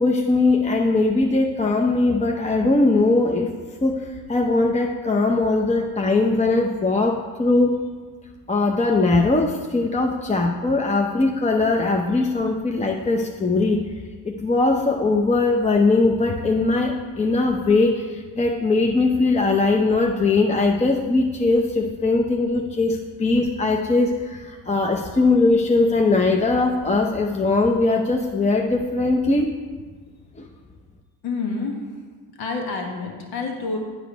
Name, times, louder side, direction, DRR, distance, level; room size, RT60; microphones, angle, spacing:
voice 1, 0.0-3.5 3.8-7.7 8.5-13.8 14.2-18.0 18.4-29.5, left 3 dB, 20° left, 1 dB, 0.6 m, -20 dB
voice 2, 31.2-31.9 32.4-33.8, left 4 dB, 80° left, 1 dB, 1.4 m, -28 dB
10.0 x 5.0 x 5.1 m, 1.5 s
cardioid pair, 85°, 37 cm